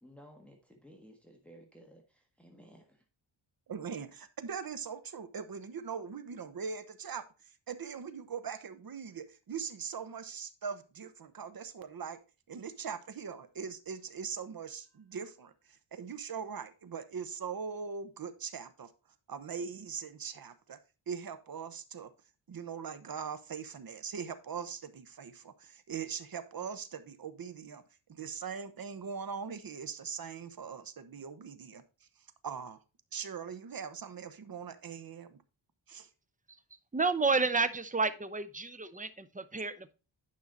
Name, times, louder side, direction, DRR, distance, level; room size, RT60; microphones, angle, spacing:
voice 1, 0.0-3.0, equal, 5° left, 2 dB, 1.6 m, -56 dB
voice 2, 3.7-7.2 7.7-12.2 12.5-15.5 15.9-18.9 19.3-20.8 21.1-22.1 22.5-27.8 28.1-31.8 32.4-32.8 33.1-35.4 35.9-36.1, right 6 dB, 50° right, 12 dB, 1.0 m, -41 dB
voice 3, 36.9-39.9, right 4 dB, 20° right, 13 dB, 0.7 m, -30 dB
9.8 x 5.6 x 3.9 m, 0.32 s
wide cardioid pair, 100°, 45 cm